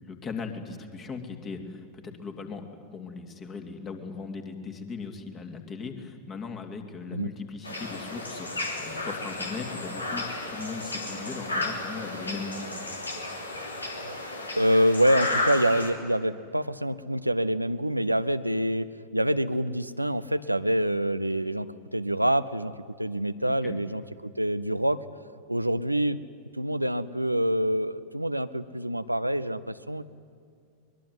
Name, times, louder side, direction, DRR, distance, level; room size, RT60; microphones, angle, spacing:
voice 1, 0.0-12.7 23.6-23.7, left 4 dB, 25° left, 5 dB, 2.8 m, -38 dB
sound 1, 7.6-15.9, left 2 dB, 80° left, 3.0 m, -33 dB
voice 2, 14.5-25.0 25.5-26.2 26.5-30.0, equal, 85° right, 12 dB, 0.7 m, -26 dB
23.0 x 21.5 x 9.6 m, 2.3 s
figure-of-eight pair, 90°, 0 cm